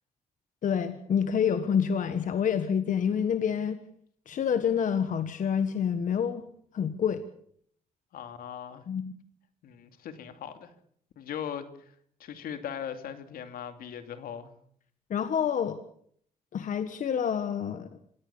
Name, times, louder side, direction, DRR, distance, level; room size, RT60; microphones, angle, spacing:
voice 1, 0.6-3.8 4.3-6.4 6.7-7.2 8.9-9.1 15.1-15.8 16.5-17.9, left 7 dB, 60° left, 10 dB, 1.5 m, -27 dB
voice 2, 8.1-8.9 9.6-10.7 11.2-11.9 12.2-14.5, left 8 dB, 80° left, 8 dB, 2.6 m, -39 dB
27.0 x 17.0 x 7.1 m, 0.65 s
cardioid pair, 95°, 15 cm